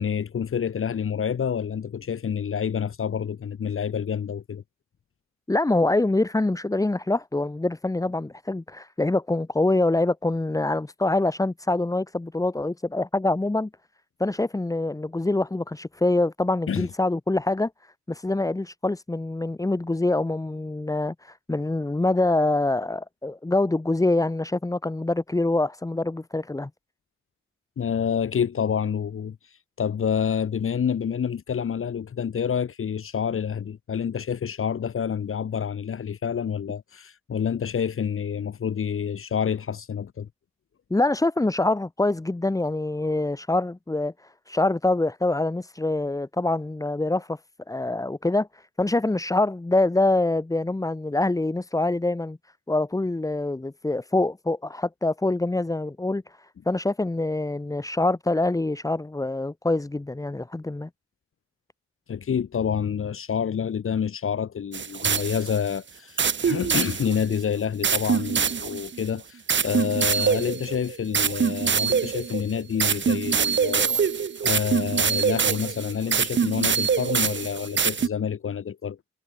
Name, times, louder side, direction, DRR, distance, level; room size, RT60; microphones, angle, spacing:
voice 1, 0.0-4.6 16.7-16.9 27.8-29.4 29.8-40.3 62.1-74.0 74.4-79.0, left 7 dB, 45° left, 1.8 m, -28 dB
voice 2, 5.5-13.7 14.2-26.7 40.9-47.4 47.7-52.4 52.7-60.9, left 2 dB, 10° left, 1.3 m, -25 dB
sound 1, 64.7-65.7 66.2-67.4 67.8-69.0 69.5-78.1, right 6 dB, 40° right, 1.6 m, -24 dB
cardioid pair, 90°, 30 cm